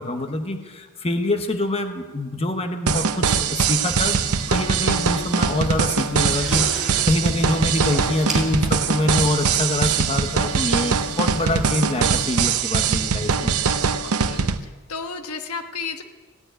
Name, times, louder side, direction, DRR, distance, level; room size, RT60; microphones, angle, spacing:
voice 1, 0.0-4.2 4.5-13.5, left 1 dB, 25° left, 6 dB, 1.1 m, -25 dB
sound 1, 2.9-14.6, right 6 dB, 85° right, 0.7 m, -22 dB
sound 2, 3.8-12.7, right 1 dB, ahead, 3.8 m, -37 dB
voice 2, 14.0-16.0, left 5 dB, 85° left, 6 dB, 1.3 m, -33 dB
16.5 x 9.7 x 9.0 m, 1.3 s
head